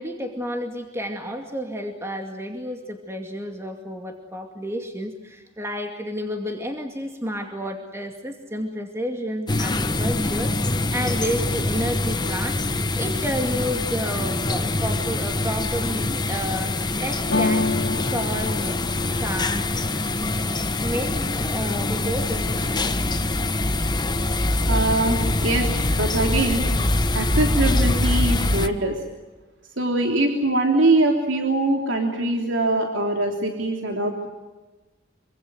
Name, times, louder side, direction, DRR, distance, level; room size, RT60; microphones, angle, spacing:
voice 1, 0.0-12.6 13.0-16.7 17.0-18.8 19.2-19.7 20.8-23.0, equal, 15° right, 3 dB, 2.4 m, -31 dB
sound 1, 9.5-28.7, left 2 dB, 20° left, 1.2 m, -24 dB
sound 2, 17.3-21.2 21.6-22.2 22.5-23.3, left 3 dB, 75° left, 2.1 m, -29 dB
voice 2, 24.7-26.6 27.1-29.0 29.8-34.3, right 2 dB, 75° right, 2 dB, 3.3 m, -22 dB
26.5 x 25.0 x 7.8 m, 1.2 s
head